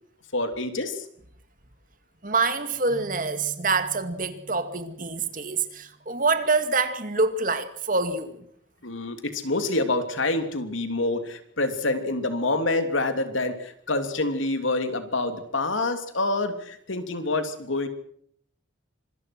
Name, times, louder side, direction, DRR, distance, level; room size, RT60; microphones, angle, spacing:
voice 1, 0.3-1.0 8.8-17.9, left 2 dB, 80° left, 3.1 m, -27 dB
voice 2, 2.2-8.5, right 3 dB, 40° right, 2.2 m, -26 dB
sound 1, 2.9-6.4, right 2 dB, 25° left, 7.6 m, -46 dB
26.0 x 21.5 x 6.2 m
head